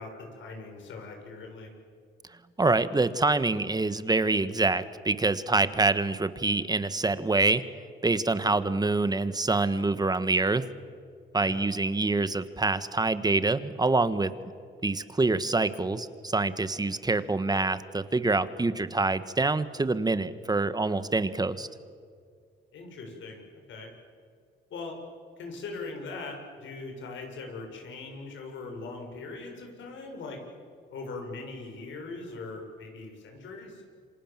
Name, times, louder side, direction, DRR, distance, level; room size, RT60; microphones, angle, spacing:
voice 1, 0.0-1.7 11.4-11.6 22.7-23.4 23.7-23.9 24.7-25.0 25.4-30.4 30.9-33.8, left 3 dB, 70° left, 3 dB, 7.0 m, -40 dB
voice 2, 2.6-7.6 8.0-10.6 11.3-14.3 14.8-21.7, right 3 dB, 20° right, 12 dB, 1.5 m, -26 dB
28.5 x 26.0 x 7.6 m, 2.2 s
cardioid pair, 90°, 20 cm